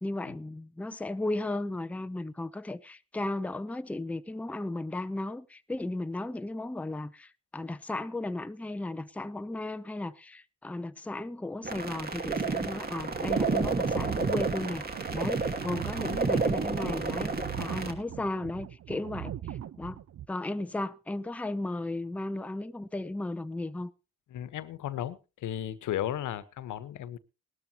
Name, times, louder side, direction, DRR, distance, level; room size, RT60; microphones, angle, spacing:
voice 1, 0.0-14.8 15.1-20.0 20.3-23.9, left 2 dB, 5° left, 0.6 m, -35 dB
sound 1, 11.6-17.9, right 4 dB, 30° right, 2.4 m, -30 dB
sound 2, 13.0-20.3, right 11 dB, 55° right, 0.9 m, -40 dB
voice 2, 24.3-27.2, left 11 dB, 75° left, 1.2 m, -35 dB
18.5 x 12.5 x 2.9 m
cardioid pair, 90°, 30 cm